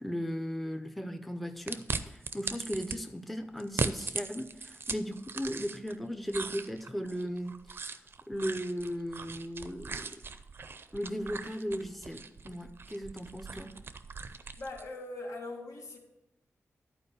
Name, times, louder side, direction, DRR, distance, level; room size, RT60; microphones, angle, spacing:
voice 1, 0.0-7.6 8.3-10.2 10.9-13.8, equal, ahead, 0.5 m, -37 dB
sound 1, 1.7-3.0 3.6-6.0 6.3-14.9, right 4 dB, 45° right, 0.5 m, -39 dB
voice 2, 14.6-16.0, left 2 dB, 85° left, 1.8 m, -41 dB
11.0 x 4.7 x 6.6 m
wide cardioid pair, 160°, 5 cm